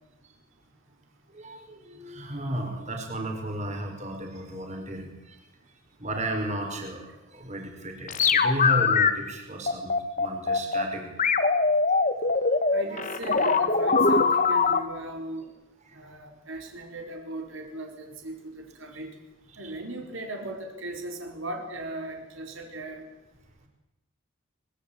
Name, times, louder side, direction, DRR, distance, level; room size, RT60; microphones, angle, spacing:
voice 1, 1.3-5.4 6.0-11.1 12.9-13.4 15.9-16.0 19.5-19.8, right 1 dB, 35° right, 3 dB, 5.3 m, -34 dB
sound 1, 8.1-9.1 9.7-10.8 11.2-14.8, left 4 dB, 40° left, 1.9 m, -22 dB
voice 2, 12.7-15.5 15.9-19.1 19.6-23.1, right 1 dB, 65° right, 3 dB, 4.8 m, -37 dB
25.0 x 22.0 x 8.9 m, 0.93 s
head